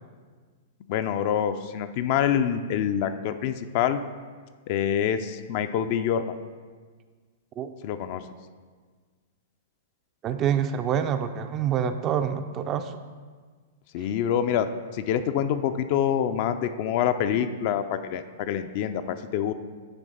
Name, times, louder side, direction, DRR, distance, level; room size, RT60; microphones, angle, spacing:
voice 1, 0.9-4.0 4.7-6.4 7.8-8.2 13.9-14.7 14.9-19.5, left 9 dB, 50° left, 10 dB, 0.3 m, -26 dB
voice 2, 10.2-13.0, right 8 dB, 30° right, 9 dB, 0.3 m, -26 dB
9.1 x 3.4 x 4.0 m, 1.5 s
figure-of-eight pair, 105°, 0 cm